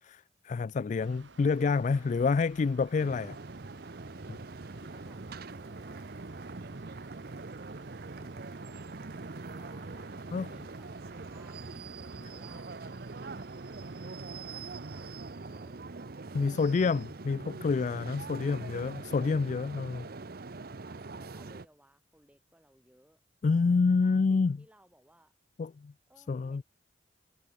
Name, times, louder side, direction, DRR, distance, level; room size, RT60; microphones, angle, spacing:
voice 1, 0.0-3.4 4.3-4.4 10.3-10.5 12.2-12.3 16.3-20.1 23.4-24.6 25.6-25.9 26.3-26.6, left 4 dB, 40° left, 0.3 m, -28 dB
Mechanical fan, 1.0-15.2, right 3 dB, 75° right, 1.9 m, -55 dB
sound 1, 3.0-21.6, right 3 dB, 55° right, 0.8 m, -43 dB
voice 2, 9.5-12.7 14.9-17.1 18.4-19.7 20.8-23.2 23.7-25.3 26.1-26.6, right 1 dB, 5° right, 5.4 m, -63 dB
head